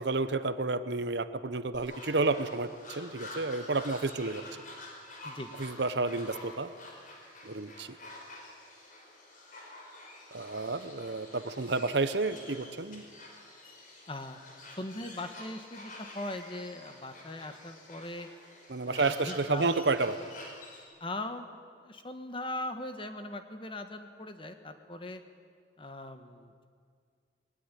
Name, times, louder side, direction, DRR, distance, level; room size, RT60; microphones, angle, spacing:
voice 1, 0.0-4.4 5.6-6.7 7.4-8.0 10.3-13.0 18.7-20.2, right 3 dB, 65° right, 12 dB, 1.0 m, -30 dB
sound 1, 1.7-20.8, left 2 dB, 45° left, 4.8 m, -48 dB
voice 2, 14.1-14.4 14.8-18.3 18.8-19.7 21.0-21.5 21.8-25.2 25.8-26.7, left 1 dB, 30° left, 8 dB, 1.4 m, -40 dB
19.5 x 19.5 x 9.9 m, 2.1 s
head